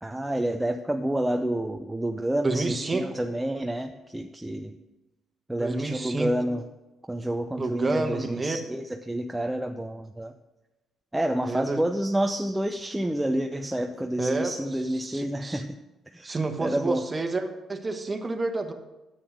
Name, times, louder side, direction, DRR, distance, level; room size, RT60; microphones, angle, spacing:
voice 1, 0.0-4.7 5.5-6.6 7.1-10.3 11.1-15.7 16.1-17.0, right 1 dB, 10° right, 5 dB, 0.6 m, -29 dB
voice 2, 2.4-3.0 5.6-6.3 7.6-8.6 11.4-11.8 14.2-14.5 15.0-15.6 16.2-18.7, right 3 dB, 25° right, 6 dB, 1.3 m, -29 dB
9.8 x 8.0 x 6.4 m, 1.0 s
cardioid pair, 90°, 0 cm